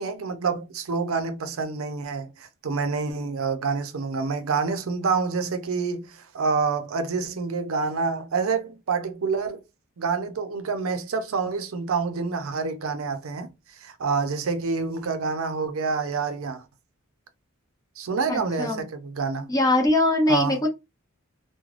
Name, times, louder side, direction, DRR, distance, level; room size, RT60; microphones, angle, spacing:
voice 1, 0.0-9.6 10.0-13.5 13.8-16.6 18.0-19.5 20.3-20.6, right 4 dB, 80° right, 0.5 m, -27 dB
voice 2, 18.3-18.8 19.5-20.7, left 1 dB, 15° left, 0.6 m, -22 dB
3.1 x 2.1 x 2.4 m
head